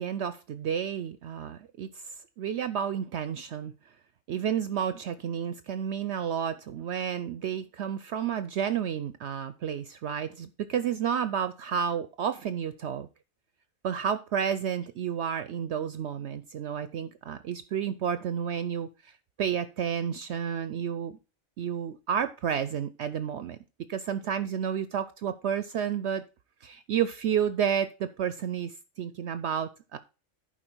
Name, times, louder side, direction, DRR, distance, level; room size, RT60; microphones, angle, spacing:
voice 1, 0.0-3.7 4.3-13.1 13.8-21.2 21.6-23.6 23.9-26.2 26.6-30.0, right 8 dB, 65° right, 13 dB, 0.8 m, -31 dB
11.0 x 4.8 x 4.5 m, 0.30 s
omnidirectional pair, 1.4 m